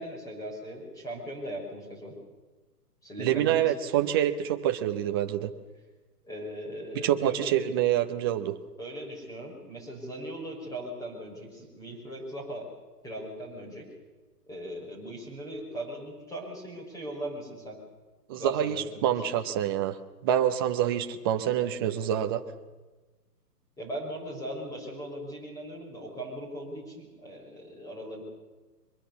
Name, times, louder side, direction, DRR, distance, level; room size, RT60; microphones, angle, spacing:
voice 1, 0.0-2.2 3.0-3.7 6.2-7.6 8.8-12.7 13.0-13.9 14.5-17.8 18.4-19.4 23.8-28.2, right 1 dB, 5° left, 0 dB, 5.8 m, -39 dB
voice 2, 3.2-5.5 6.9-8.6 18.3-20.0 20.2-22.4, right 11 dB, 15° right, 7 dB, 0.7 m, -26 dB
24.0 x 21.5 x 7.1 m, 1.2 s
hypercardioid pair, 150°, 48 cm